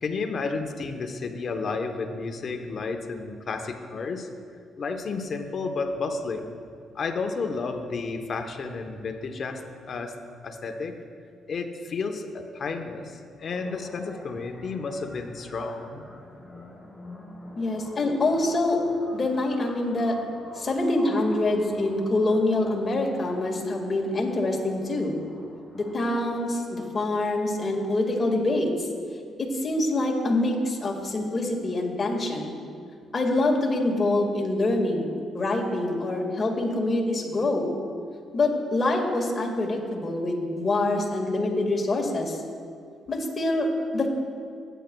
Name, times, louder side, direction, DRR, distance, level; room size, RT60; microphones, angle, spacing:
voice 1, 0.0-4.3 4.8-6.5 6.9-9.6 9.9-10.2 10.4-11.0 11.5-16.0, left 4 dB, 50° left, 5 dB, 0.9 m, -31 dB
sound 1, 13.4-27.4, left 2 dB, 5° left, 2.3 m, -44 dB
voice 2, 17.5-18.8 19.1-20.2 20.5-25.1 25.7-28.9 29.4-32.5 33.1-37.7 38.3-42.4 43.1-44.1, left 2 dB, 35° left, -1 dB, 1.8 m, -25 dB
16.5 x 9.1 x 2.3 m, 2.4 s
cardioid pair, 90°, 0 cm